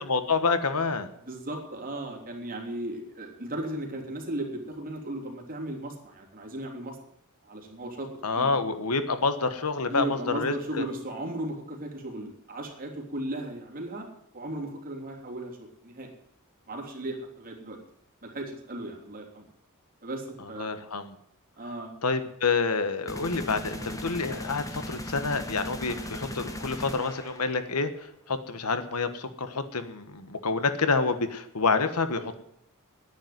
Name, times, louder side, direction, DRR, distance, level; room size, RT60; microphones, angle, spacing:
voice 1, 0.1-1.1 8.2-10.8 20.6-21.1 22.0-27.9 28.3-32.4, left 4 dB, 85° left, 10 dB, 1.4 m, -28 dB
voice 2, 1.3-7.0 7.4-8.1 8.3-8.5 9.9-14.1 14.3-16.1 16.7-17.8 18.2-19.5 20.0-20.8 21.6-21.9, right 1 dB, 40° right, 0 dB, 3.4 m, -36 dB
sound 1, 23.1-27.8, left 1 dB, 15° left, 1.5 m, -38 dB
11.0 x 9.9 x 9.5 m, 0.75 s
head